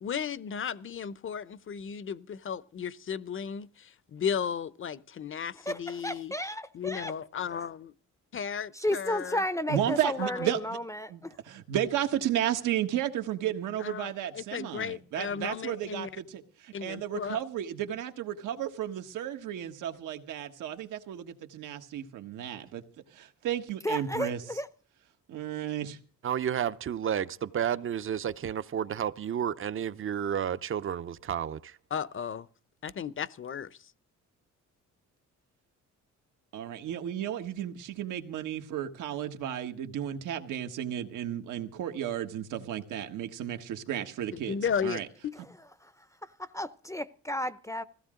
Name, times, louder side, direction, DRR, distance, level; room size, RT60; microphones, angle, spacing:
voice 1, 0.0-6.3 6.7-7.9 8.3-9.4 10.2-10.4 13.8-16.1 16.7-17.4 31.9-32.5 32.8-33.7 44.3-45.3, left 7 dB, 40° left, 0.8 m, -35 dB
voice 2, 5.5-7.1 8.7-11.4 23.8-24.7 46.5-47.8, left 1 dB, 10° left, 0.7 m, -33 dB
voice 3, 9.7-10.8 11.1-22.8 23.1-24.4 25.3-26.0 36.5-45.1, right 11 dB, 85° right, 1.5 m, -33 dB
voice 4, 26.2-31.8, right 9 dB, 45° right, 0.7 m, -31 dB
20.5 x 16.0 x 3.8 m
cardioid pair, 90°, 30 cm